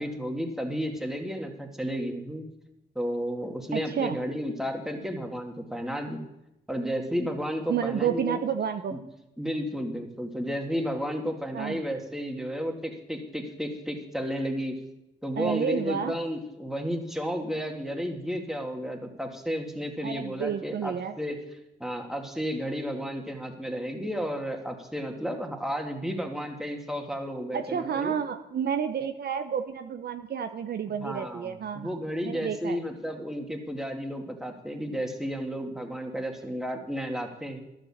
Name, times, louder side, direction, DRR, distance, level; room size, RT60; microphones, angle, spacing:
voice 1, 0.0-2.5 3.0-6.3 6.7-8.4 8.9-9.0 9.4-14.8 15.2-21.4 21.8-28.1 31.0-37.6, equal, ahead, 2 dB, 2.3 m, -32 dB
voice 2, 3.7-4.2 7.7-9.0 11.5-11.8 15.4-16.1 20.0-21.2 27.5-32.0 32.2-32.8, right 8 dB, 55° right, 8 dB, 0.7 m, -30 dB
11.5 x 7.4 x 7.2 m, 0.90 s
supercardioid pair, 65°, 20 cm